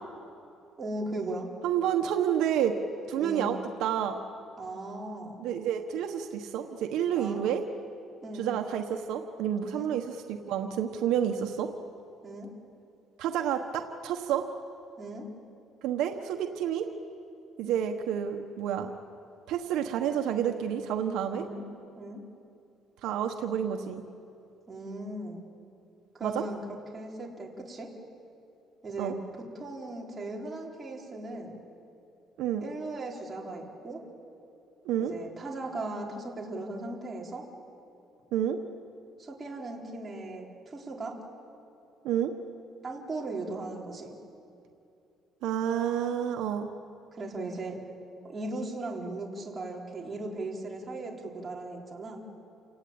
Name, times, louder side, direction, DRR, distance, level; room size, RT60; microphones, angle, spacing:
voice 1, 0.8-1.5 3.2-3.6 4.6-5.4 7.1-7.4 8.2-8.5 9.7-9.9 12.2-12.5 15.0-15.3 21.3-21.6 22.0-22.2 24.7-25.4 26.1-26.6 26.9-27.9 28.8-29.1 29.5-31.5 32.6-34.0 35.0-37.4 39.2-41.2 42.8-44.1 47.1-47.8 48.2-52.2, right 2 dB, 25° right, -2 dB, 4.0 m, -37 dB
voice 2, 1.6-2.7 3.1-4.2 5.4-7.6 8.4-11.7 13.2-14.4 15.8-16.8 17.6-18.9 19.5-21.4 23.0-24.0 26.2-26.4 29.0-29.1 32.4-32.7 34.8-35.1 38.3-38.6 42.0-42.3 45.4-46.7, right 9 dB, 80° right, 5 dB, 1.3 m, -29 dB
29.0 x 18.0 x 8.9 m, 2.7 s
cardioid pair, 135°, 0 cm